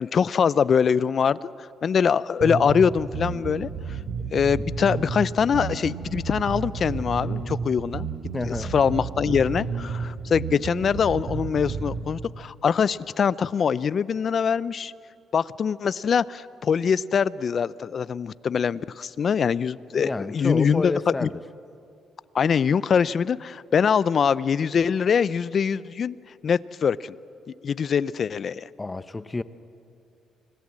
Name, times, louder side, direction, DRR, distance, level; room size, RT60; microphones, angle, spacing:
voice 1, 0.0-1.4 1.8-3.7 4.3-8.1 8.5-14.9 15.3-20.9 21.2-21.3 22.3-26.2 26.4-27.2 27.6-28.7, left 7 dB, 50° left, 0.5 m, -23 dB
sound 1, 2.4-12.0, right 5 dB, 75° right, 4.1 m, -31 dB
voice 2, 8.3-8.7 20.0-21.4 28.8-29.4, left 3 dB, 20° left, 0.8 m, -29 dB
26.0 x 18.0 x 7.5 m
cardioid pair, 90°, 0 cm